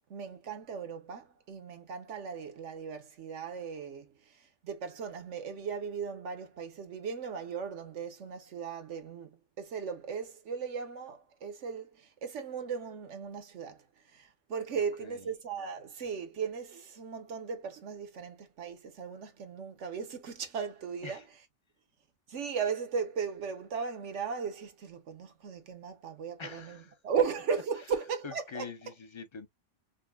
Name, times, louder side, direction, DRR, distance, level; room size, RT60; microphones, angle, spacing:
voice 1, 0.1-21.2 22.3-28.6, right 6 dB, 80° right, 1.3 m, -37 dB
voice 2, 26.4-27.0 28.2-29.5, left 5 dB, 35° left, 0.5 m, -44 dB
5.2 x 2.2 x 2.2 m
omnidirectional pair, 1.2 m